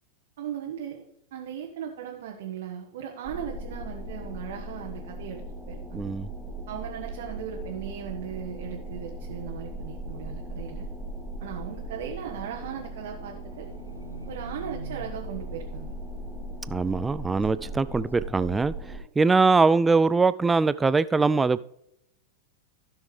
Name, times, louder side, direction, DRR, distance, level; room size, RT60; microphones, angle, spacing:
voice 1, 0.4-6.0 6.7-10.9 11.4-13.7 14.3-15.9, right 8 dB, 55° right, 1.1 m, -38 dB
sound 1, 3.2-19.0, right 1 dB, 5° left, 3.3 m, -38 dB
voice 2, 5.9-6.3 16.7-18.7 19.2-21.6, right 4 dB, 10° right, 0.4 m, -22 dB
Livestock farm animals working animals, 12.4-17.2 17.4-18.1 18.6-18.7, right 2 dB, 80° right, 0.7 m, -47 dB
15.5 x 6.2 x 3.3 m
figure-of-eight pair, 90°, 0 cm